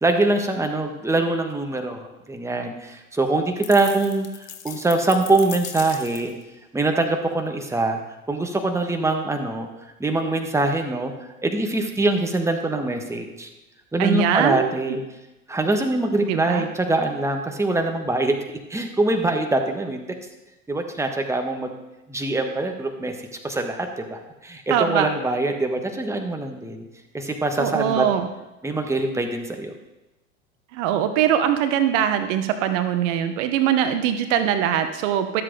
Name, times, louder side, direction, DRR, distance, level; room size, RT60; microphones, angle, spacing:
voice 1, 0.0-6.3 6.7-8.0 8.3-9.7 10.0-13.5 13.9-15.0 15.5-18.4 18.7-20.0 20.7-21.7 22.1-26.8 27.1-28.0 28.6-29.8, right 2 dB, 5° right, 4 dB, 1.4 m, -23 dB
sound 1, 3.6-6.4, left 10 dB, 85° left, 0.9 m, -37 dB
voice 2, 14.0-14.7 16.3-16.7 24.7-25.1 27.6-28.3 30.7-35.4, right 10 dB, 65° right, 9 dB, 1.0 m, -22 dB
12.5 x 7.7 x 3.9 m, 1.0 s
hypercardioid pair, 85°, 40 cm